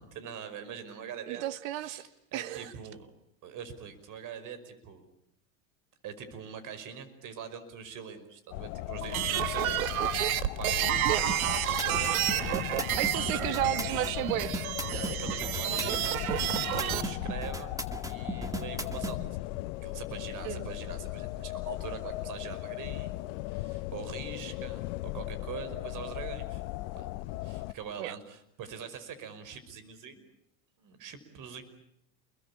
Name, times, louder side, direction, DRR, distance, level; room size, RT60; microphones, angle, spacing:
voice 1, 0.0-1.5 1.8-3.1 3.4-5.1 6.0-9.9 10.6-13.7 14.9-16.2 16.6-17.7 18.0-19.4 19.8-23.1 23.5-26.6 26.9-27.1 27.4-30.3 30.8-31.6, right 7 dB, 50° right, 12 dB, 5.5 m, -43 dB
voice 2, 1.3-2.0 2.3-2.7 11.1-11.2 13.0-14.6 20.4-20.7 28.0-28.1, right 14 dB, 70° right, 13 dB, 1.8 m, -33 dB
sound 1, 8.5-27.7, left 18 dB, 60° left, 1.2 m, -37 dB
sound 2, 9.0-17.0, right 12 dB, 90° right, 1.6 m, -30 dB
sound 3, 11.3-19.1, right 2 dB, 10° right, 2.2 m, -36 dB
28.5 x 22.5 x 8.6 m, 0.74 s
supercardioid pair, 110°, 41 cm